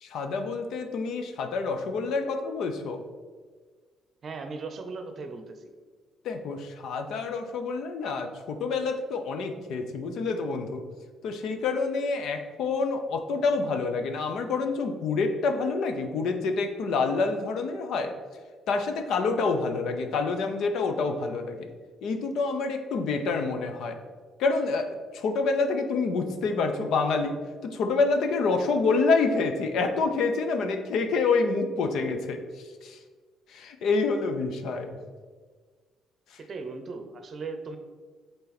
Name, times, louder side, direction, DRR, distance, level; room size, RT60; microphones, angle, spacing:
voice 1, 0.0-3.0 6.2-10.8 11.2-18.1 18.7-21.7 22.0-24.0 24.4-24.9 25.1-32.4 32.8-33.0 33.5-35.0, left 4 dB, 70° left, 6 dB, 0.7 m, -27 dB
voice 2, 4.2-5.7 36.5-37.8, right 4 dB, 40° right, 6 dB, 0.7 m, -37 dB
6.9 x 3.9 x 4.1 m, 1.5 s
cardioid pair, 120°, 0 cm